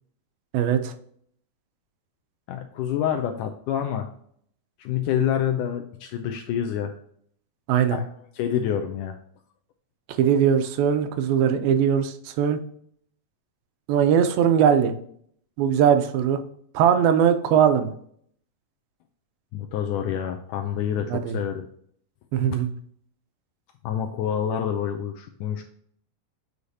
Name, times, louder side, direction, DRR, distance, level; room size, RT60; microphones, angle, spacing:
voice 1, 0.5-0.9 7.7-8.0 10.2-12.6 13.9-14.9 15.6-16.4 16.7-17.9 21.1-21.4 22.3-22.7, right 8 dB, 85° right, 9 dB, 2.5 m, -20 dB
voice 2, 2.5-4.1 4.8-6.9 7.9-8.0 8.3-9.2 19.5-21.7 23.8-25.6, left 9 dB, 85° left, 4 dB, 1.9 m, -27 dB
8.0 x 5.0 x 2.7 m, 0.63 s
omnidirectional pair, 4.1 m